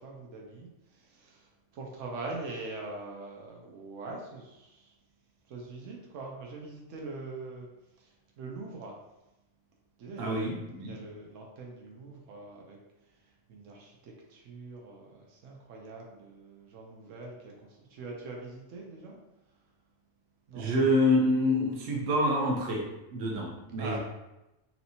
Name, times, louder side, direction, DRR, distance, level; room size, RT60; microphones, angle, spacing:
voice 1, 0.0-5.0 5.5-7.7 8.0-9.0 10.0-12.8 13.0-19.2 19.5-19.6 20.5-20.7 23.8-24.0, right 3 dB, 90° right, -1 dB, 1.0 m, -43 dB
voice 2, 10.2-10.5 10.8-10.9 20.5-22.8 23.1-24.0, left 1 dB, 65° right, -1 dB, 1.0 m, -26 dB
3.1 x 2.9 x 2.7 m, 0.96 s
omnidirectional pair, 1.3 m